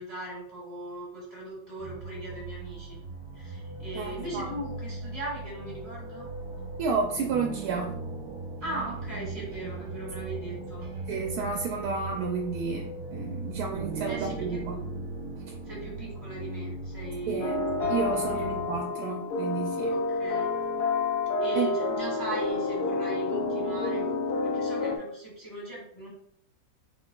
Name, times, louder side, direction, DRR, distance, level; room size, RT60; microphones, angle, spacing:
voice 1, 0.0-3.0 3.3-6.3 8.6-10.8 14.1-14.6 15.6-17.5 18.3-18.5 19.9-20.5 21.4-24.2 24.4-26.1, right 1 dB, 10° left, -7 dB, 1.4 m, -38 dB
sound 1, 1.8-18.8, right 3 dB, 35° right, 0.7 m, -38 dB
voice 2, 3.9-4.5 6.8-8.0 11.1-14.8 17.3-17.6 17.9-19.9 21.6-21.7, right 4 dB, 70° right, 2 dB, 0.9 m, -31 dB
sound 2, 17.4-25.0, left 3 dB, 70° left, 1.0 m, -29 dB
4.6 x 3.7 x 2.3 m, 0.69 s
omnidirectional pair, 2.0 m